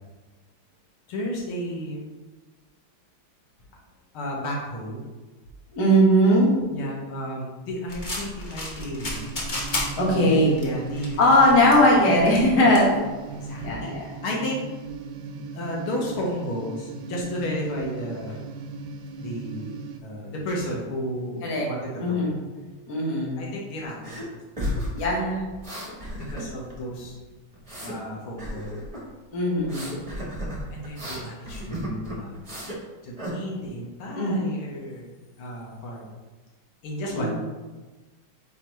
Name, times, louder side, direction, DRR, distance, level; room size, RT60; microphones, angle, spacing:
voice 1, 1.1-2.1 4.1-5.0 6.7-9.4 10.0-11.2 13.3-14.6 15.3-18.4 19.2-19.7 20.0-22.4 23.4-24.3 26.1-27.1 27.8-28.8 30.7-32.4 33.0-36.1 36.8-37.3, equal, 85° left, -2 dB, 2.0 m, -33 dB
voice 2, 5.7-6.5 10.0-10.5 11.2-12.9 13.6-14.0 21.4-21.7 22.0-22.4 22.9-23.4 25.0-25.4 29.3-29.9 34.2-34.5 37.1-37.3, equal, 55° left, -3 dB, 1.9 m, -19 dB
sound 1, 7.9-13.7, left 1 dB, 35° left, 0.8 m, -34 dB
sound 2, 9.0-20.0, right 4 dB, 75° right, 1.2 m, -38 dB
sound 3, 24.0-24.3 24.6-26.8 27.0-28.0 28.4-29.0 29.6-32.8 33.2-33.3, equal, 20° right, 1.1 m, -33 dB
8.7 x 3.7 x 3.1 m, 1.3 s
omnidirectional pair, 2.3 m